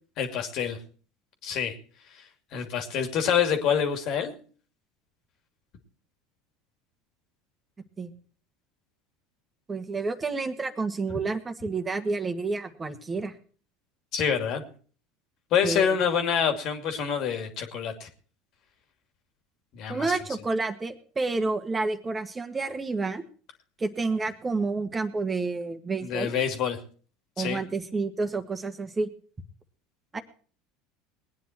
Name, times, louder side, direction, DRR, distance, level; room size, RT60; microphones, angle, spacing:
voice 1, 0.2-0.8 1.4-1.7 2.5-4.3 14.1-14.6 15.5-18.1 19.7-20.1 26.0-26.8 27.4-27.6, left 7 dB, 55° left, 7 dB, 2.6 m, -26 dB
voice 2, 9.7-13.3 15.6-16.0 19.9-23.2 23.8-26.3 27.4-29.1 30.1-30.2, right 3 dB, 20° right, 7 dB, 1.8 m, -29 dB
20.0 x 9.6 x 4.5 m, 0.42 s
hypercardioid pair, 80°, 0 cm